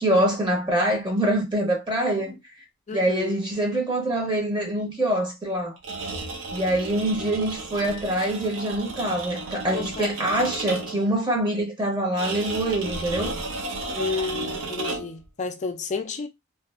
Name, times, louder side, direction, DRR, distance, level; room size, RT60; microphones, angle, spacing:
voice 1, 0.0-2.4 2.9-5.7 6.5-13.3, right 1 dB, 20° right, 0.8 m, -25 dB
voice 2, 2.9-3.4 9.7-10.1 14.0-16.3, left 4 dB, 35° left, 0.3 m, -31 dB
sound 1, 5.8-11.1 12.2-15.2, right 2 dB, 60° right, 0.6 m, -33 dB
2.5 x 2.4 x 2.4 m
head